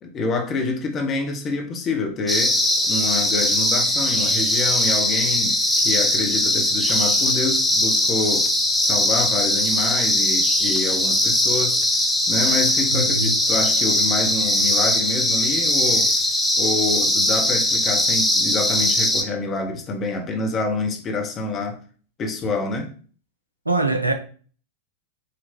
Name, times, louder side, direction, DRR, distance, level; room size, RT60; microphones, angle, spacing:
voice 1, 0.0-2.6 2.9-8.5 8.8-11.9 12.3-16.1 16.6-21.8 22.2-22.9, left 3 dB, 30° left, 1.0 m, -27 dB
sound 1, 2.3-19.2, left 1 dB, 5° left, 0.7 m, -20 dB
voice 2, 12.9-13.4 23.7-24.1, right 2 dB, 85° right, 0.6 m, -22 dB
5.6 x 2.5 x 3.7 m
figure-of-eight pair, 90°, 0 cm